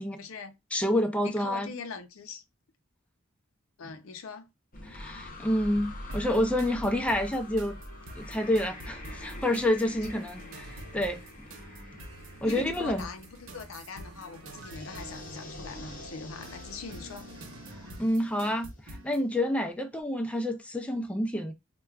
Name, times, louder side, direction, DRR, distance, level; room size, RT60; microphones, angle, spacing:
voice 1, 0.0-0.5 1.2-2.4 3.8-4.5 12.4-17.3, left 4 dB, 85° left, 0.6 m, -42 dB
voice 2, 0.7-1.7 4.9-7.8 8.2-10.7 10.9-11.5 12.4-13.0 18.0-21.5, left 1 dB, 5° left, 0.4 m, -28 dB
sound 1, 4.7-19.3, left 1 dB, 45° left, 0.7 m, -45 dB
sound 2, 6.1-19.2, right 1 dB, 90° right, 0.9 m, -47 dB
4.4 x 2.2 x 2.3 m
head